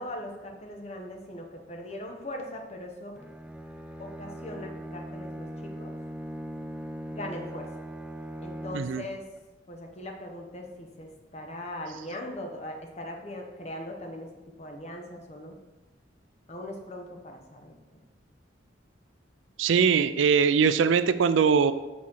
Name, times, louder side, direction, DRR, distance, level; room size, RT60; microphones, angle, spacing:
voice 1, 0.0-3.2 4.0-5.9 7.1-7.7 8.4-9.2 9.7-14.3 14.6-15.6 16.5-17.7, left 1 dB, 35° left, 2 dB, 1.0 m, -40 dB
Bowed string instrument, 3.1-9.1, right 1 dB, 5° right, 0.3 m, -40 dB
voice 2, 19.6-21.7, right 6 dB, 85° right, 12 dB, 0.4 m, -21 dB
6.1 x 4.2 x 6.3 m, 1.1 s
head